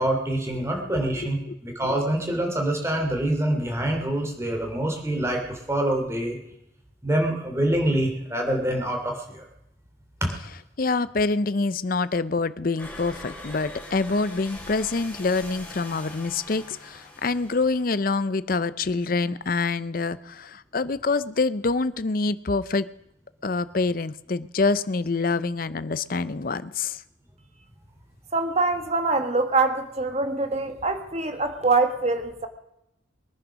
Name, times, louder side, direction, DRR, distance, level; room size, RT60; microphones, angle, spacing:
voice 1, 0.0-6.4 7.0-9.4 10.2-10.3, right 1 dB, 15° right, 2 dB, 2.8 m, -25 dB
voice 2, 10.8-22.9 23.4-27.0, left 3 dB, 45° left, 15 dB, 0.6 m, -26 dB
sound 1, 12.8-18.3, left 2 dB, 10° left, 4.4 m, -42 dB
voice 3, 28.3-32.5, right 3 dB, 35° right, 7 dB, 1.5 m, -24 dB
22.5 x 9.9 x 6.2 m, 0.85 s
head